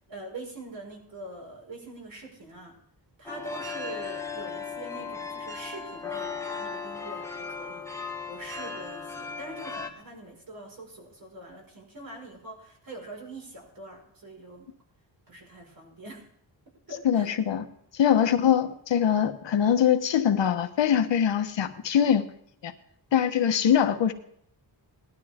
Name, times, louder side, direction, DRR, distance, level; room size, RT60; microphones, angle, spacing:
voice 1, 0.1-2.8 3.2-7.9 8.3-14.7 15.3-16.2 16.9-17.3 18.1-18.5, right 1 dB, 50° right, 0 dB, 5.4 m, -43 dB
sound 1, 3.2-9.9, left 5 dB, 5° left, 1.2 m, -36 dB
voice 2, 17.0-17.6 17.9-22.3 22.6-22.7 23.1-24.1, left 9 dB, 80° left, 6 dB, 1.3 m, -23 dB
18.5 x 12.0 x 3.6 m, 0.69 s
wide cardioid pair, 165°, 43 cm